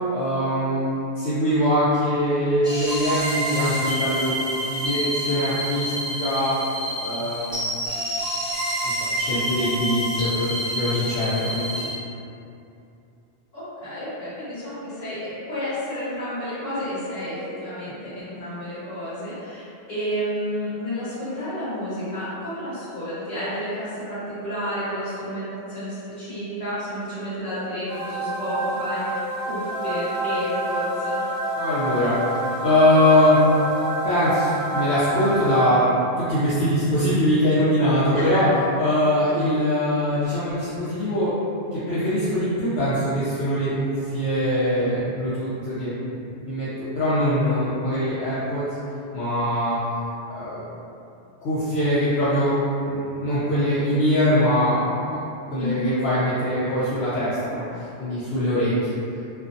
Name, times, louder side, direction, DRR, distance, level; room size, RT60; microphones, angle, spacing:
voice 1, 0.1-4.3 4.6-6.6 7.0-7.7 9.0-11.9 31.5-33.4 34.0-35.8 36.2-38.5 38.8-41.3 41.7-46.7 46.9-48.8 49.1-49.8 50.3-50.6 51.4-52.6 52.9-55.2 55.5-58.9, left 1 dB, 70° left, -13 dB, 0.9 m, -22 dB
sound 1, 2.6-11.9, equal, 5° right, 0.5 m, -28 dB
voice 2, 13.5-29.2 29.5-31.2 38.1-38.4 55.6-55.9, equal, 40° left, -13 dB, 1.2 m, -31 dB
sound 2, 27.9-36.1, right 1 dB, 75° right, 0.9 m, -28 dB
2.5 x 2.2 x 2.5 m, 2.6 s
omnidirectional pair, 1.2 m